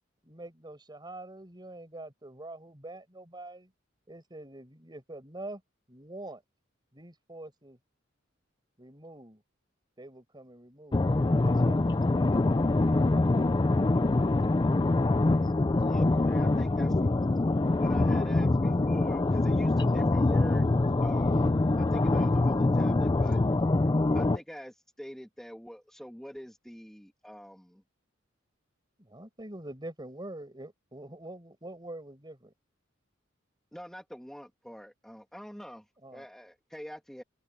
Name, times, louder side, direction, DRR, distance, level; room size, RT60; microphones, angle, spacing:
voice 1, 0.2-3.7 4.1-5.6 5.9-6.4 6.9-7.8 8.8-9.4 10.0-12.5 29.0-32.5 36.0-36.2, right 1 dB, 20° right, 5.3 m, -45 dB
voice 2, 10.9-24.4, left 2 dB, 25° left, 0.4 m, -24 dB
voice 3, 15.9-17.1 17.8-20.7 21.0-23.4 24.1-27.8 33.7-37.2, equal, ahead, 2.5 m, -45 dB
head